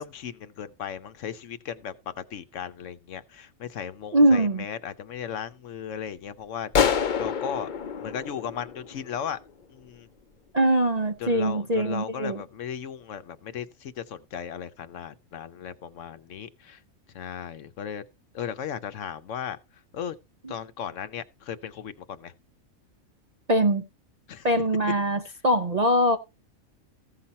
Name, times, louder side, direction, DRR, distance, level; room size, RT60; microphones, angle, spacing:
voice 1, 0.0-6.7 7.2-7.7 8.0-9.4 9.7-10.1 11.2-16.8 17.1-18.0 18.3-19.6 19.9-20.1 20.5-22.3 24.3-24.5, left 8 dB, 65° left, 1.1 m, -36 dB
voice 2, 4.1-4.6 10.5-12.4 23.5-23.8 24.4-26.2, right 1 dB, 40° right, 0.6 m, -22 dB
sound 1, 6.7-9.3, left 7 dB, 45° left, 0.7 m, -27 dB
15.5 x 5.8 x 4.1 m
omnidirectional pair, 1.4 m